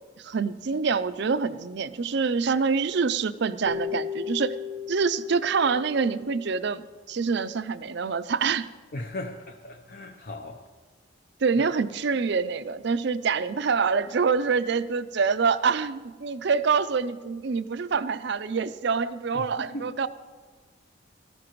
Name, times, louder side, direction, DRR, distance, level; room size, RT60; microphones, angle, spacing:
voice 1, 0.2-4.5 4.9-6.8 7.1-8.7 11.4-20.1, right 5 dB, 55° right, 13 dB, 0.5 m, -26 dB
Keyboard (musical), 3.7-6.9, left 6 dB, 85° right, 0.8 m, -36 dB
voice 2, 8.9-10.6 19.3-19.9, left 1 dB, 45° left, 4 dB, 0.7 m, -37 dB
18.5 x 13.5 x 3.1 m, 1.4 s
head